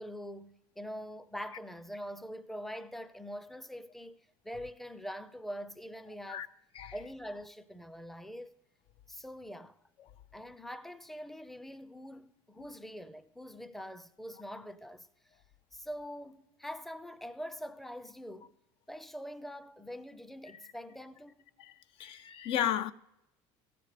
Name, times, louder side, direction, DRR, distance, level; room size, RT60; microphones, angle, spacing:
voice 1, 0.0-4.2 4.4-6.5 6.9-8.5 9.1-9.8 10.3-15.1 15.7-18.6 18.9-21.5, equal, ahead, 0.5 m, -44 dB
voice 2, 21.6-22.9, left 10 dB, 55° left, 0.4 m, -34 dB
15.0 x 6.7 x 5.0 m
supercardioid pair, 110°, 11 cm